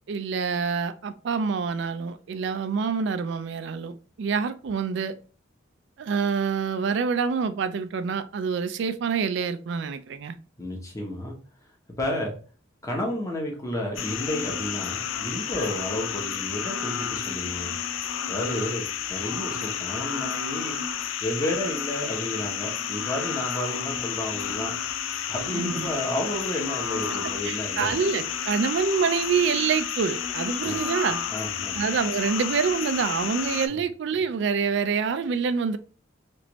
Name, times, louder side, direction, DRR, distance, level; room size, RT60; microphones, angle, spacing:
voice 1, 0.1-5.1 6.0-10.4 25.5-25.9 27.4-31.2 31.8-35.8, right 5 dB, 65° right, 0.3 m, -26 dB
voice 2, 10.6-11.4 12.0-12.3 12.8-17.7 18.3-20.7 21.2-24.8 25.3-27.9 30.6-30.8 31.3-31.8 33.7-33.8, left 1 dB, 15° left, 0.9 m, -31 dB
sound 1, 14.0-33.7, left 8 dB, 85° left, 0.4 m, -31 dB
3.3 x 2.5 x 2.9 m
head